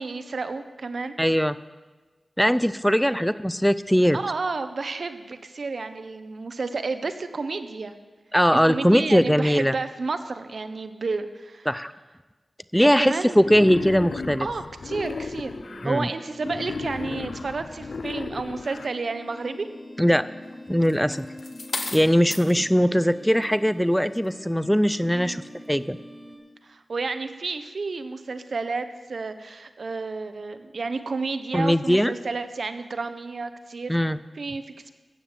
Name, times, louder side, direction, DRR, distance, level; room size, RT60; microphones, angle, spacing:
voice 1, 0.0-1.1 3.1-3.3 4.1-7.9 8.5-11.7 13.0-13.4 14.4-15.6 15.8-19.7 25.1-25.5 26.6-33.9 34.4-34.9, right 4 dB, 70° right, 10 dB, 0.9 m, -31 dB
voice 2, 1.2-1.6 2.4-4.2 8.3-9.7 11.7-11.9 12.7-14.5 15.8-16.1 20.0-20.3 20.7-21.3 21.9-25.4 25.7-26.0 31.5-32.1 33.9-34.2, equal, ahead, 14 dB, 0.4 m, -20 dB
Wild animals, 13.4-15.9 16.4-18.9, left 4 dB, 80° left, 0.5 m, -35 dB
sound 1, 15.5-26.4, left 1 dB, 25° left, 6.0 m, -44 dB
sound 2, 20.8-22.5 23.3-23.6, left 3 dB, 55° left, 1.3 m, -34 dB
14.0 x 9.0 x 7.4 m, 1.3 s
wide cardioid pair, 75°, 0 cm